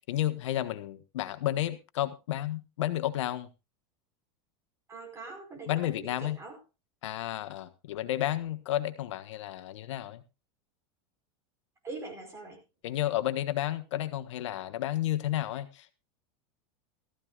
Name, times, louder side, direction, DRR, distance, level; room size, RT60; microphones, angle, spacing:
voice 1, 0.1-3.5 5.7-6.4 7.0-10.2 12.8-15.9, left 13 dB, 85° left, 10 dB, 1.3 m, -32 dB
voice 2, 4.9-6.6 11.8-12.6, right 3 dB, 20° right, 3 dB, 4.9 m, -43 dB
18.5 x 14.0 x 2.4 m, 0.27 s
supercardioid pair, 150°, 15 cm